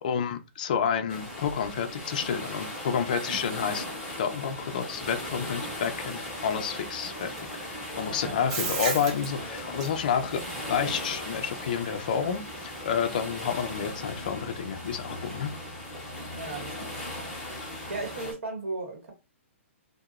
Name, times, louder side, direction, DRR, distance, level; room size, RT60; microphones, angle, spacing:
voice 1, 0.0-3.9 4.2-7.3 7.6-15.5, left 7 dB, 35° left, 0.3 m, -30 dB
sound 1, 1.1-18.3, left 1 dB, 5° right, 0.8 m, -38 dB
voice 2, 8.1-8.4 16.3-17.0 17.9-19.1, right 3 dB, 70° right, 1.0 m, -36 dB
Bathtub (filling or washing), 8.5-13.9, right 4 dB, 30° right, 0.6 m, -36 dB
2.8 x 2.0 x 2.3 m
hypercardioid pair, 175°, 7 cm